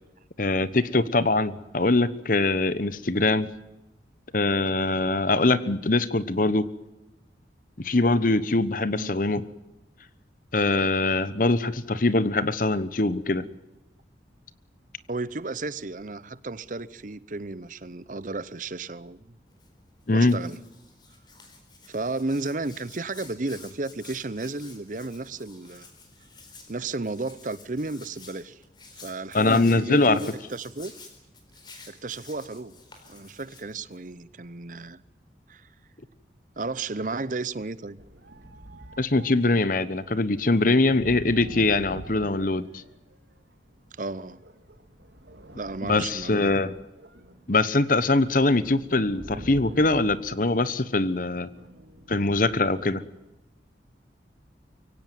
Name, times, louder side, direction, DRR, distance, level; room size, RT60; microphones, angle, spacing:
voice 1, 0.4-3.5 4.3-6.7 7.8-9.4 10.5-13.5 20.1-20.4 29.3-30.2 39.0-42.8 45.8-46.7 47.5-51.5 52.1-53.0, left 2 dB, 50° left, 16 dB, 1.1 m, -23 dB
voice 2, 15.1-19.4 20.1-20.6 21.9-25.9 26.7-28.6 29.0-30.9 31.9-32.7 33.1-35.0 35.5-35.7 36.6-38.0 44.0-44.4 45.6-46.5, right 3 dB, 45° right, 18 dB, 0.8 m, -33 dB
Hands, 19.5-34.1, left 4 dB, 25° left, 4.4 m, -51 dB
sound 1, 38.0-43.3 44.1-53.0, equal, 70° right, 3.2 m, -46 dB
24.0 x 17.0 x 9.3 m, 0.98 s
head